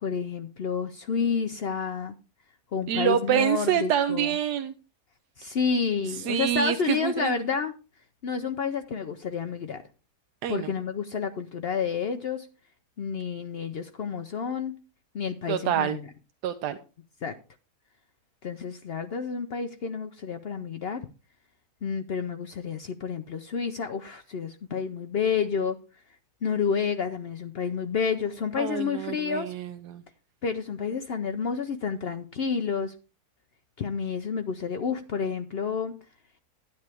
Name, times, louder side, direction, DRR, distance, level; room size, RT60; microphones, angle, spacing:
voice 1, 0.0-2.1 2.7-4.3 5.4-7.7 8.2-9.8 10.5-12.5 13.0-14.8 15.1-16.0 17.2-17.3 18.4-21.1 21.8-25.8 26.4-29.5 30.4-32.9 33.8-35.9, left 6 dB, 70° left, 8 dB, 0.5 m, -30 dB
voice 2, 2.9-4.7 6.1-7.3 10.4-10.7 15.5-16.0 16.4-16.8 28.6-30.0, right 10 dB, 80° right, 10 dB, 1.2 m, -27 dB
9.7 x 9.4 x 3.4 m, 0.33 s
omnidirectional pair, 1.7 m